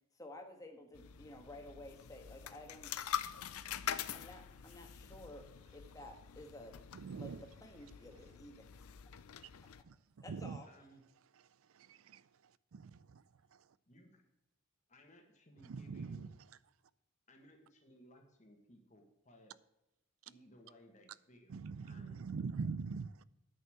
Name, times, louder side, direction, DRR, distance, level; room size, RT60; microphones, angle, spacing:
voice 1, 0.1-2.9 4.1-5.5 5.7-6.8 7.2-7.3 7.6-8.6 10.2-10.7, left 1 dB, 15° left, 1.4 m, -52 dB
sound 1, 0.9-9.8, left 9 dB, 90° left, 0.5 m, -45 dB
voice 2, 6.9-7.4 9.9-10.0 10.3-10.6 11.7-12.2 12.7-13.2 15.7-16.3 21.5-23.2, right 5 dB, 75° right, 0.4 m, -42 dB
voice 3, 10.7-11.0 13.9-14.2 14.9-16.3 17.3-19.5 20.2-22.2, equal, 35° left, 1.6 m, -62 dB
9.7 x 5.5 x 7.7 m
head